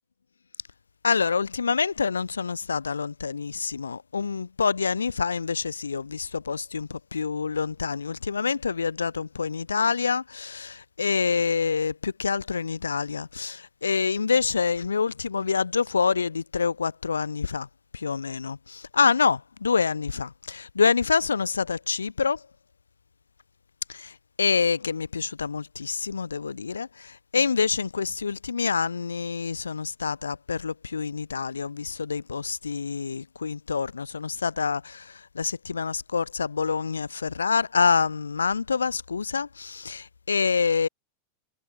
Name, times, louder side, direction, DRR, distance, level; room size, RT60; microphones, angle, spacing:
voice 1, 1.0-17.7 17.9-22.4 23.9-40.9, left 5 dB, 75° left, 0.7 m, -26 dB
figure-of-eight pair, 90°, 0 cm